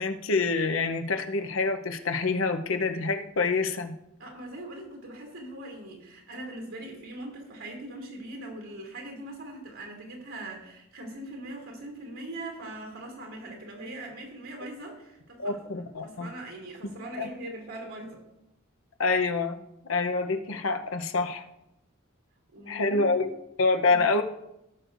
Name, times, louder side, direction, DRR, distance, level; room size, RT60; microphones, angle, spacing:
voice 1, 0.0-3.9 15.4-16.3 17.2-17.3 19.0-19.6 19.8-21.4 22.7-24.2, left 3 dB, 70° left, 7 dB, 0.8 m, -27 dB
voice 2, 4.2-18.2 22.5-23.1 23.8-24.0, right 1 dB, 75° right, 0 dB, 2.9 m, -41 dB
17.5 x 6.5 x 2.6 m, 0.87 s
head